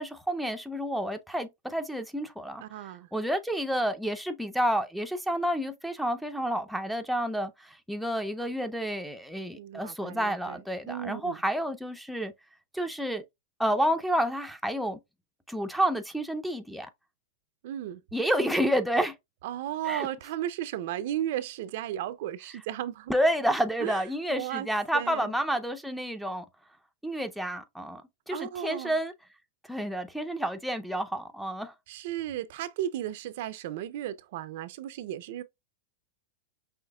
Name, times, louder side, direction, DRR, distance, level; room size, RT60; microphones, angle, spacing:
voice 1, 0.0-2.6 3.1-12.3 12.7-13.2 13.6-15.0 15.5-16.9 18.1-19.1 19.9-20.1 23.1-26.5 27.0-28.0 28.3-29.1 29.7-31.7, equal, ahead, 0.5 m, -29 dB
voice 2, 2.6-3.1 9.6-11.4 17.6-18.0 19.4-23.1 23.8-24.0 24.3-24.7 24.9-25.3 28.3-29.0 31.9-35.4, right 12 dB, 60° right, 0.5 m, -35 dB
5.7 x 2.9 x 2.3 m
supercardioid pair, 150°, 0 cm